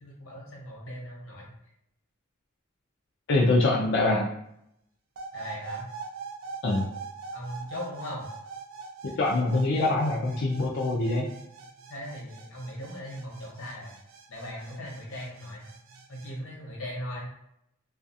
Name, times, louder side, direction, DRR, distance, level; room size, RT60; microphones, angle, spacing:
voice 1, 0.0-1.5 5.3-5.8 7.3-8.3 11.9-13.9 14.3-15.6 16.1-17.4, equal, 90° left, -2 dB, 0.9 m, -39 dB
voice 2, 3.3-4.3 6.6-6.9 9.0-11.3, left 2 dB, 60° left, -3 dB, 0.4 m, -24 dB
sound 1, 5.2-16.3, right 5 dB, 75° right, 0.4 m, -43 dB
2.4 x 2.4 x 2.6 m, 0.77 s
head